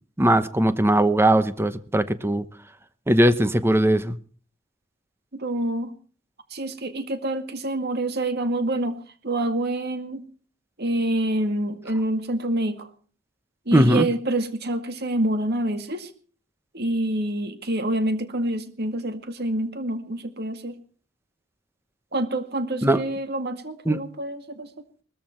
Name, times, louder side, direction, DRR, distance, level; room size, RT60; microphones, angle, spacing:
voice 1, 0.2-2.4 3.1-4.2 13.7-14.1 22.8-23.0 23.8-24.0, right 1 dB, 15° right, 13 dB, 1.0 m, -19 dB
voice 2, 5.3-5.9 6.5-8.9 9.2-10.2 10.8-12.9 13.7-16.1 16.7-20.7 22.1-24.7, right 1 dB, 55° right, 8 dB, 2.0 m, -27 dB
19.5 x 14.0 x 4.5 m, 0.42 s
head